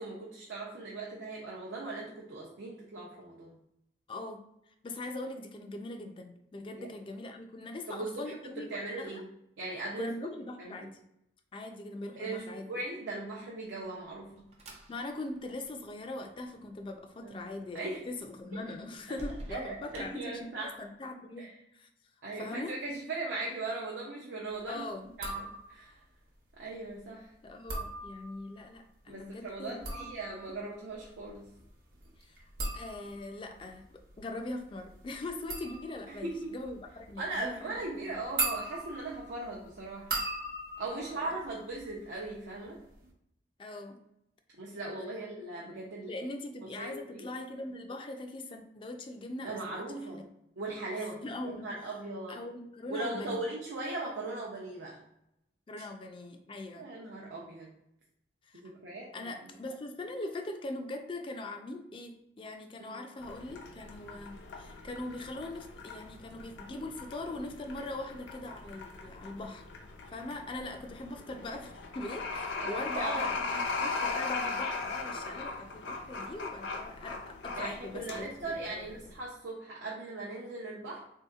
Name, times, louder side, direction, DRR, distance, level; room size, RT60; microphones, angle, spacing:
voice 1, 0.0-3.6 6.7-6.9 7.9-9.3 9.6-10.1 10.6-10.9 12.2-14.5 17.2-17.4 17.7-18.0 18.5-18.6 19.5-20.7 21.4-21.5 22.2-24.9 25.2-26.0 26.6-27.3 29.1-31.5 36.1-36.6 37.2-40.2 40.8-42.8 44.6-46.1 46.6-47.3 49.4-50.2 50.6-52.4 52.9-55.0 56.8-57.7 58.5-59.5 62.8-63.0 72.6-73.4 77.6-81.0, right 2 dB, 85° right, -4 dB, 0.6 m, -39 dB
voice 2, 4.1-4.4 4.8-9.2 10.0-11.0 11.5-12.7 14.9-21.9 22.4-22.8 24.7-25.1 27.4-30.1 32.2-32.4 32.7-38.2 40.8-41.4 43.6-44.0 45.0-45.1 46.1-50.2 51.0-51.7 52.3-53.4 55.7-56.9 58.5-58.6 59.1-69.6 70.1-78.8, left 2 dB, 30° left, 5 dB, 0.3 m, -41 dB
sound 1, 13.7-20.9, right 1 dB, 35° right, 0.5 m, -51 dB
sound 2, 25.1-26.0 27.5-28.6 29.6-42.3 42.6-43.1, right 2 dB, 55° right, 0.8 m, -40 dB
sound 3, 63.2-79.2, left 4 dB, 80° left, 0.5 m, -39 dB
3.5 x 2.7 x 2.3 m, 0.80 s
head